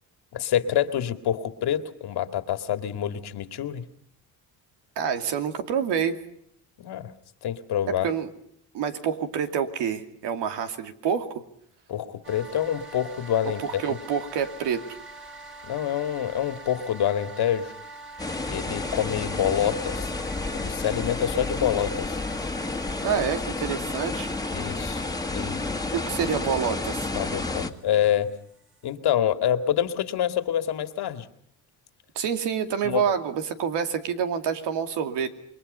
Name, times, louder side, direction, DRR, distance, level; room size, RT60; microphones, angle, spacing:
voice 1, 0.3-3.8 6.8-7.1 7.4-8.1 11.9-14.0 15.6-17.7 18.5-20.1 20.5-22.2 24.5-25.0 25.3-25.7 27.2-28.3 28.8-31.3 32.8-33.0, left 10 dB, 70° left, 9 dB, 2.3 m, -26 dB
voice 2, 5.0-6.2 8.0-8.3 8.7-11.4 13.4-14.8 23.0-24.3 25.9-27.1 32.1-35.3, right 7 dB, 85° right, 7 dB, 2.7 m, -27 dB
sound 1, 12.2-29.0, right 2 dB, 30° right, 3.9 m, -46 dB
sound 2, 18.2-27.7, left 3 dB, 10° left, 2.0 m, -30 dB
28.5 x 22.5 x 5.6 m, 0.70 s
cardioid pair, 100°, 41 cm